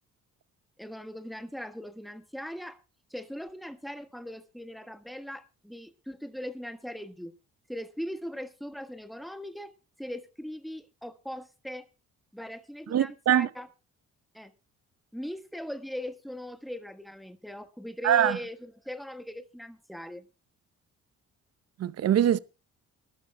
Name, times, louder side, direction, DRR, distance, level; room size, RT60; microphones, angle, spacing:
voice 1, 0.8-2.8 3.1-7.3 7.7-9.7 10.0-11.9 12.3-13.7 14.3-14.5 15.1-20.3, equal, ahead, 1.4 m, -39 dB
voice 2, 12.9-13.5 18.0-18.4 21.8-22.4, right 10 dB, 55° right, 0.8 m, -23 dB
24.5 x 12.5 x 2.2 m
cardioid pair, 90°, 30 cm